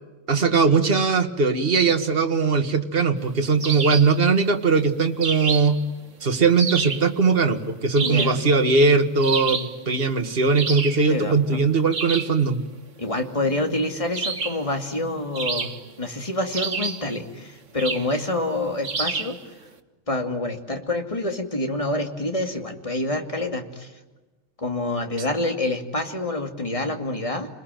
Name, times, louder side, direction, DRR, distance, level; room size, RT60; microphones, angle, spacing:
voice 1, 0.3-5.8 6.2-12.6, right 4 dB, 50° right, 6 dB, 1.9 m, -20 dB
A Red-eyed Vireo bird vocalizing, 3.6-4.2 5.2-5.8 6.6-7.1 8.0-8.5 9.2-9.8 10.5-11.1 11.9-12.4 14.1-14.7 15.4-16.0 16.5-17.1 17.8-18.1 18.8-19.4, right 5 dB, 75° right, 1.9 m, -28 dB
voice 2, 8.0-8.4 11.1-11.6 13.0-15.7 16.0-19.4 20.1-23.9 24.6-27.5, left 2 dB, 25° left, 5 dB, 2.6 m, -27 dB
29.5 x 21.0 x 9.2 m, 1.2 s
omnidirectional pair, 1.3 m